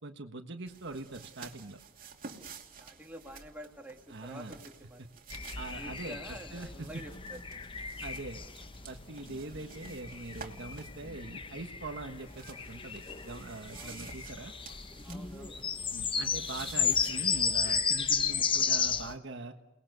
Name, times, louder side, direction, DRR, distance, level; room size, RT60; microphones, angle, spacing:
voice 1, 0.0-1.8 4.1-4.5 5.6-7.0 8.0-8.4 8.9-14.5 15.9-19.6, right 2 dB, 60° right, 5 dB, 1.4 m, -42 dB
sound 1, 0.7-11.1 12.1-19.2, right 5 dB, 45° right, 2.7 m, -52 dB
voice 2, 2.8-5.1 5.7-7.4 13.7-14.1 15.0-15.6, equal, 10° right, 1 dB, 2.6 m, -48 dB
sound 2, 5.3-19.1, left 6 dB, 25° left, 0.8 m, -34 dB
30.0 x 20.5 x 6.8 m, 0.91 s
head